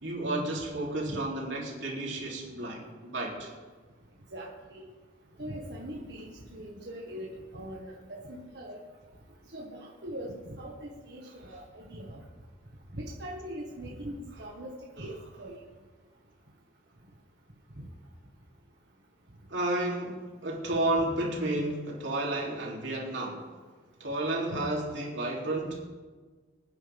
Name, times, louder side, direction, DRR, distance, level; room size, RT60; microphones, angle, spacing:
voice 1, 0.0-3.5 19.5-23.4 24.0-25.8, right 1 dB, 90° right, -2 dB, 3.5 m, -32 dB
voice 2, 4.3-4.9 5.4-8.8 9.5-12.2 12.9-15.5 17.8-17.9, equal, 60° right, -3 dB, 1.8 m, -41 dB
26.0 x 10.0 x 3.7 m, 1.4 s
head